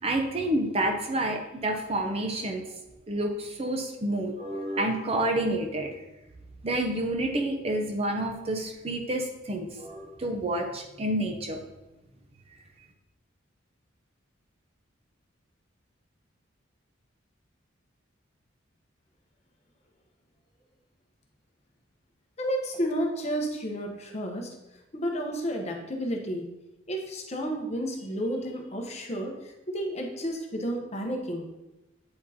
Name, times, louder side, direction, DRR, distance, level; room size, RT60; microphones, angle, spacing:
voice 1, 0.0-2.6 3.1-5.9 6.6-11.6, right 1 dB, 30° right, 3 dB, 0.6 m, -29 dB
voice 2, 22.4-24.5 24.9-26.5 26.9-31.5, equal, 30° left, 2 dB, 0.8 m, -31 dB
8.5 x 4.4 x 2.8 m, 0.96 s
head